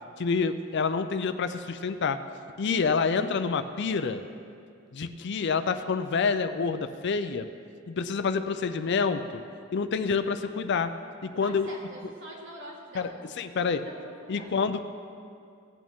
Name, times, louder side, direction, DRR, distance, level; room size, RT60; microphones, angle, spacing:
voice 1, 0.2-2.2 2.6-4.2 4.9-7.5 7.9-9.4 9.7-10.9 11.2-11.7 12.9-13.1 13.4-13.8 14.3-14.8, left 5 dB, 60° left, 10 dB, 0.5 m, -27 dB
voice 2, 2.8-3.1 11.4-14.5, equal, 60° right, -2 dB, 2.0 m, -45 dB
16.5 x 8.6 x 3.6 m, 2.4 s
head